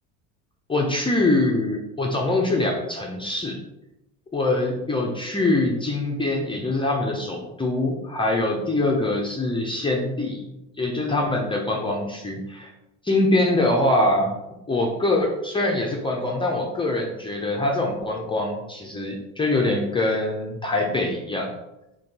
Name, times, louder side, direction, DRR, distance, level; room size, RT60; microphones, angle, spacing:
voice 1, 0.7-3.6 4.3-10.4 10.8-12.7 13.0-14.3 14.7-21.5, left 2 dB, 15° left, 0 dB, 0.6 m, -24 dB
4.3 x 2.9 x 4.0 m, 0.92 s
supercardioid pair, 100°, 36 cm